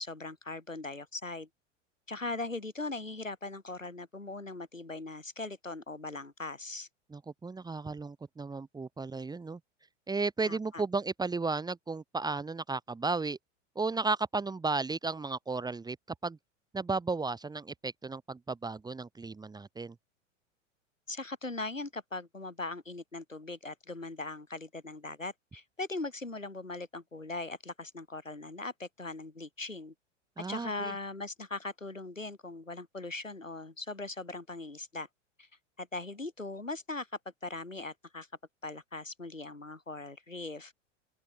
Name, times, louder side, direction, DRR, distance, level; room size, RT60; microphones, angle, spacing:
voice 1, 0.0-1.5 2.1-6.9 10.4-10.8 21.1-29.9 30.4-35.1 35.4-35.5 35.8-37.1 37.4-38.3 38.6-40.7, left 2 dB, 90° left, 1.7 m, -40 dB
voice 2, 7.1-9.6 10.1-13.4 13.8-16.0 16.2-16.4 16.7-19.9 30.4-30.9, right 3 dB, 10° right, 2.6 m, -34 dB
open air
figure-of-eight pair, 90°, 38 cm